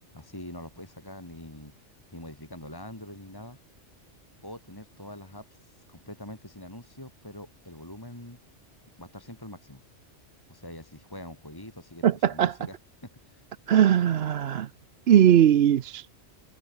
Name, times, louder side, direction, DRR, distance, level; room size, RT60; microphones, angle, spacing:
voice 1, 0.1-1.7 2.1-3.6 4.4-8.4 9.0-9.8 10.5-13.4, left 1 dB, 20° left, 3.5 m, -44 dB
voice 2, 12.0-12.5 13.7-14.7 15.1-16.0, right 10 dB, 65° right, 0.9 m, -20 dB
omnidirectional pair, 1.2 m